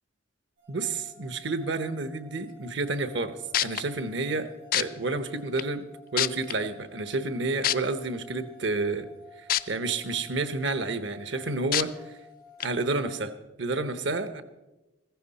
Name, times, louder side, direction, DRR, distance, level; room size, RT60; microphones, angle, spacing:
sound 1, 0.6-13.1, left 2 dB, 85° right, 6.0 m, -53 dB
voice 1, 0.7-3.4 3.6-5.8 6.1-9.1 9.7-12.1 12.6-13.3 13.6-14.4, right 3 dB, 65° right, 10 dB, 1.0 m, -30 dB
sound 2, 3.2-3.3 3.5-3.8 4.7-4.8 5.6-5.7 6.2-6.5 7.6-7.7 9.5-9.6 10.1-10.2 11.7-11.8 12.6-12.7, left 12 dB, 50° left, 0.4 m, -24 dB
15.0 x 14.5 x 4.2 m, 1.0 s
head